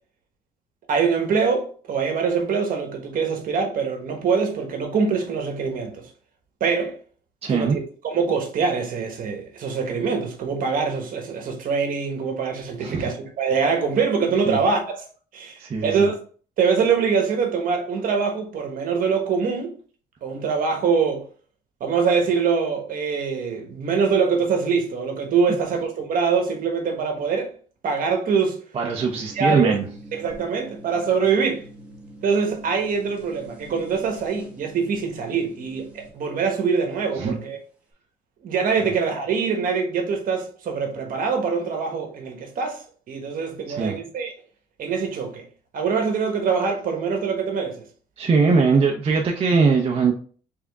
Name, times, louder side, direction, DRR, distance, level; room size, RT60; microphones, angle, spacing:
voice 1, 0.9-6.1 6.6-7.0 7.5-15.0 15.3-16.2 16.6-19.7 20.2-21.2 21.8-27.5 27.8-28.6 29.3-29.8 30.1-31.6 32.2-37.6 38.4-44.3 44.8-45.4 45.7-47.8, right 5 dB, 55° right, 1.3 m, -24 dB
voice 2, 7.4-7.8 12.8-13.1 14.5-14.6 15.6-16.1 28.7-29.8 37.2-37.3 43.7-44.0 48.2-50.1, right 4 dB, 35° right, 0.7 m, -21 dB
sound 1, 29.0-36.1, right 1 dB, 5° right, 1.5 m, -44 dB
3.7 x 3.4 x 3.5 m
cardioid pair, 110°, 17 cm